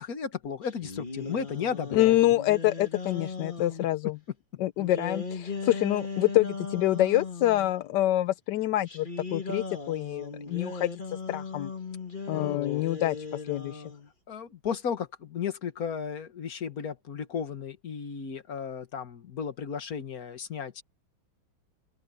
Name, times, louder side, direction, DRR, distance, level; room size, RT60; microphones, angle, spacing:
voice 1, 0.0-2.2 12.3-12.9 14.3-20.8, left 7 dB, 45° left, 1.8 m, -34 dB
sound 1, 0.6-3.9 4.8-7.7 8.9-14.1, left 4 dB, 25° left, 2.3 m, -38 dB
voice 2, 1.9-4.2 4.6-11.7 12.3-13.8, left 15 dB, 75° left, 1.1 m, -26 dB
open air
omnidirectional pair, 2.3 m